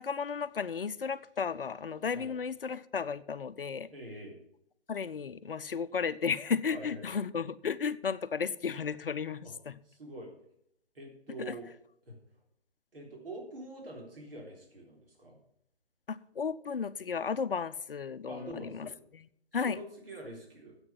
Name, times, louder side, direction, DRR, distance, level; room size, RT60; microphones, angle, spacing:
voice 1, 0.0-3.9 4.9-9.7 11.4-11.6 16.1-19.3 19.5-19.8, left 6 dB, 60° left, 0.7 m, -34 dB
voice 2, 3.9-4.4 6.7-7.0 9.4-9.5 9.8-10.3 10.9-11.7 12.1-12.2 12.9-15.4 18.3-19.1 19.7-20.8, right 2 dB, 60° right, 3.7 m, -45 dB
9.8 x 8.0 x 7.2 m
figure-of-eight pair, 140°, 32 cm